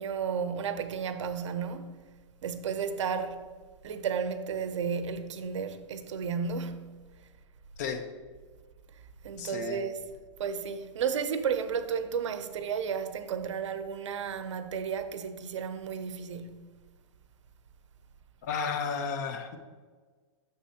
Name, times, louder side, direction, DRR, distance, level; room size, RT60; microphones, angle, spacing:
voice 1, 0.0-2.1 2.4-3.4 3.8-7.0 9.2-10.0 10.4-16.7, right 6 dB, 75° right, 0.7 m, -33 dB
voice 2, 9.4-9.8 18.4-19.6, left 6 dB, 35° left, 0.6 m, -33 dB
9.8 x 6.8 x 2.9 m
supercardioid pair, 170°, 16 cm